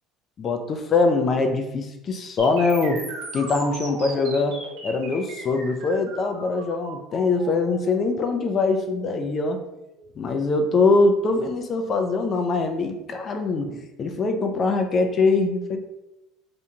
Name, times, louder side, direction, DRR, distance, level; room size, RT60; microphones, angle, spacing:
voice 1, 0.4-3.0 3.3-9.6 10.2-15.9, left 3 dB, 40° left, 6 dB, 0.4 m, -23 dB
sound 1, 2.4-10.3, right 2 dB, 85° right, 0.9 m, -38 dB
2.5 x 2.2 x 2.8 m, 0.93 s
supercardioid pair, 105°, 0 cm